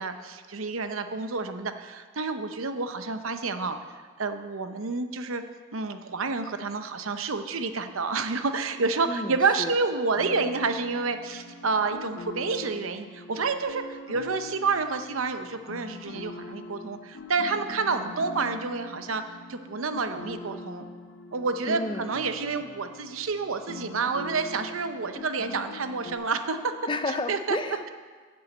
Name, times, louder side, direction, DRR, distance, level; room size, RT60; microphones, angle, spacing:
voice 1, 0.0-3.8 4.2-5.4 5.7-19.2 19.5-20.9 21.3-26.7 27.3-27.6, right 4 dB, 80° right, 8 dB, 0.8 m, -29 dB
voice 2, 9.1-9.7 21.6-22.1 26.9-27.9, left 2 dB, 20° left, 8 dB, 0.5 m, -31 dB
sound 1, 10.2-26.1, left 2 dB, 65° left, 0.7 m, -43 dB
10.5 x 7.1 x 7.9 m, 1.5 s
head